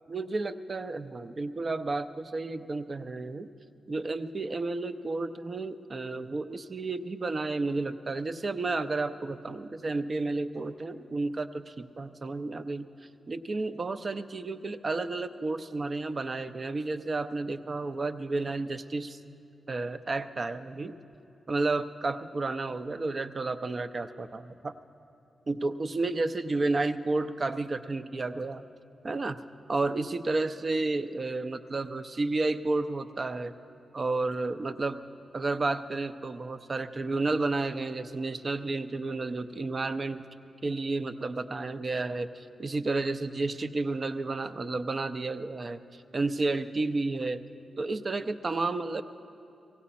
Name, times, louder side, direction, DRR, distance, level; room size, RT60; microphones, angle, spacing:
voice 1, 0.1-3.5 3.9-12.9 13.3-19.2 19.7-20.9 21.5-24.7 25.5-28.6 29.0-29.4 29.7-33.5 33.9-35.0 35.3-40.2 40.6-47.4 47.8-49.0, right 3 dB, 45° right, 10 dB, 0.5 m, -31 dB
17.0 x 16.5 x 4.2 m, 2.6 s
cardioid pair, 60°, 0 cm